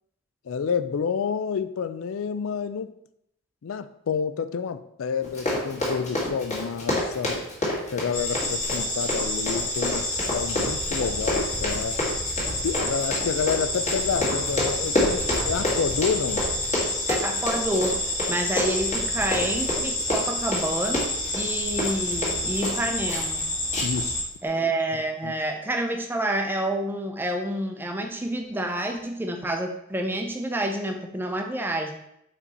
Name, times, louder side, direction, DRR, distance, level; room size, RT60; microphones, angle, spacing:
voice 1, 0.5-2.9 3.6-7.4 7.9-12.1 12.6-16.5 23.8-24.3 25.2-25.3, left 6 dB, 70° left, 0.4 m, -29 dB
Run, 5.2-22.8 23.1-23.4 23.7-24.1 24.4-24.5, left 1 dB, 35° left, 1.8 m, -29 dB
sound 1, 8.1-24.2, left 1 dB, 15° left, 2.3 m, -29 dB
voice 2, 17.1-23.4 24.4-31.9, right 1 dB, 10° right, 0.6 m, -28 dB
5.2 x 4.9 x 4.2 m
head